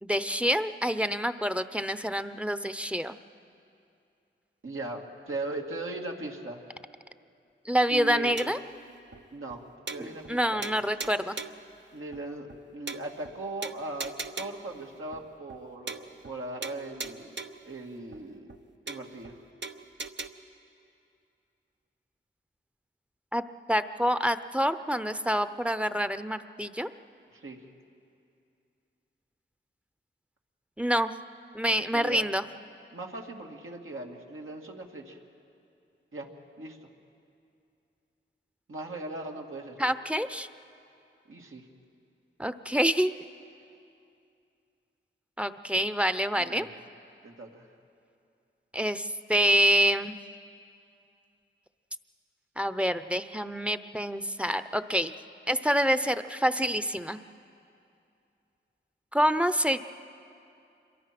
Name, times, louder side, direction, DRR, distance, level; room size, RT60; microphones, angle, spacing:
voice 1, 0.0-3.2 7.6-8.6 10.0-11.4 23.3-23.4 23.7-26.9 30.8-31.1 31.5-32.4 39.8-40.5 42.4-43.1 45.4-46.7 48.7-50.2 52.6-55.1 55.5-57.2 59.1-59.8, equal, 5° right, 11 dB, 0.8 m, -27 dB
voice 2, 4.6-6.6 7.9-8.4 9.3-10.7 11.9-18.5 18.9-19.4 27.3-27.7 31.9-32.3 32.9-35.2 36.1-36.3 36.6-36.9 38.7-39.8 41.3-41.7 46.4-46.8 47.2-47.7, right 2 dB, 80° right, 0 dB, 2.3 m, -39 dB
sound 1, 8.4-8.7 9.1-9.2 9.5-9.6 9.9-10.4 10.6-11.7 12.1-12.2 12.5-12.6 12.9-13.3 13.6-14.7 15.1-15.2 15.5-15.6 15.9-16.4 16.6-17.7 18.1-18.2 18.5-18.6 18.9-19.3 19.6-20.3, right 4 dB, 60° right, 1.0 m, -39 dB
27.0 x 23.0 x 6.0 m, 2.6 s
cardioid pair, 45°, 21 cm